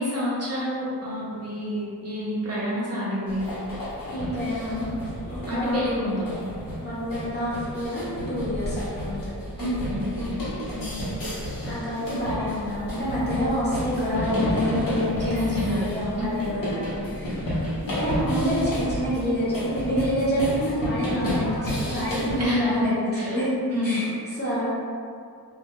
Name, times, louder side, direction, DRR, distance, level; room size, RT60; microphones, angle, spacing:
voice 1, 0.0-3.4 5.5-6.2 9.6-10.0 15.2-15.8 16.2-16.3 22.4-22.9 23.1-23.4 23.7-23.9, equal, 40° right, -8 dB, 0.6 m, -28 dB
sound 1, 3.3-22.4, equal, 60° left, 0.8 m, -31 dB
voice 2, 4.1-4.9 5.3-5.8 6.8-9.2 10.7-11.0 11.6-17.3 17.9-23.5 23.8-24.6, equal, 25° left, -10 dB, 0.7 m, -27 dB
2.2 x 2.2 x 2.9 m, 2.3 s
wide cardioid pair, 165°, 38 cm